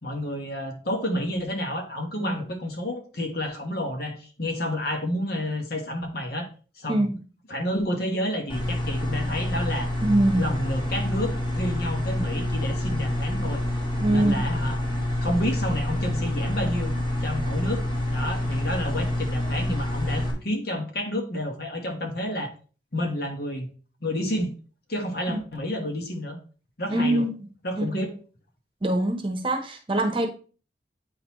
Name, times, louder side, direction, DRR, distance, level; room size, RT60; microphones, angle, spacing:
voice 1, 0.0-6.5 6.8-7.1 7.5-9.9 10.4-13.6 14.0-14.8 15.2-17.0 17.2-22.5 22.9-23.7 24.0-24.5 24.9-26.4 26.8-27.3 27.6-28.1, left 1 dB, 60° left, 3 dB, 1.4 m, -30 dB
sound 1, 8.5-20.3, left 1 dB, 30° left, 1.9 m, -27 dB
voice 2, 10.0-10.5 14.0-14.4 25.3-25.4 26.9-27.3 27.8-28.0 28.8-30.3, right 1 dB, 30° right, 4 dB, 0.9 m, -23 dB
8.6 x 3.9 x 3.0 m, 0.37 s
head